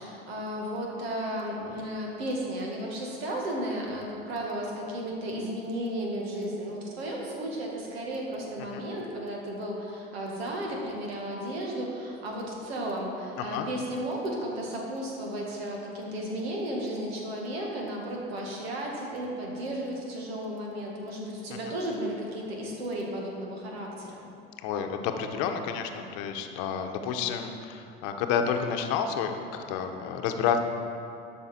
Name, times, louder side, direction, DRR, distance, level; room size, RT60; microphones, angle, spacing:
voice 1, 0.0-24.2, right 1 dB, 80° right, -1 dB, 1.9 m, -34 dB
voice 2, 24.6-30.6, left 7 dB, 65° left, 6 dB, 0.9 m, -30 dB
12.5 x 5.7 x 4.4 m, 2.7 s
hypercardioid pair, 80°, 31 cm